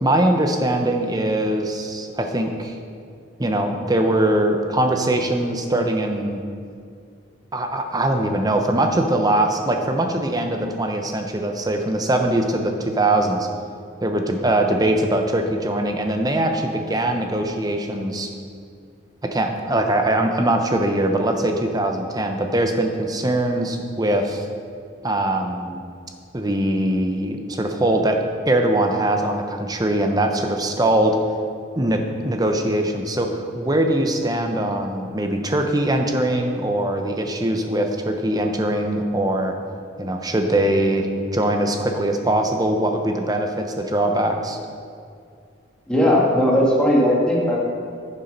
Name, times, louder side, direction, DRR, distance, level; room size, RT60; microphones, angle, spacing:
voice 1, 0.0-2.8 3.4-6.4 7.5-13.5 14.0-18.3 19.2-24.5 25.0-25.8 26.3-28.2 28.4-31.2 31.8-39.5 40.0-44.6, right 1 dB, 20° right, 4 dB, 0.7 m, -22 dB
voice 2, 45.9-47.6, equal, 5° left, -5 dB, 1.8 m, -17 dB
10.0 x 7.3 x 5.3 m, 2.3 s
head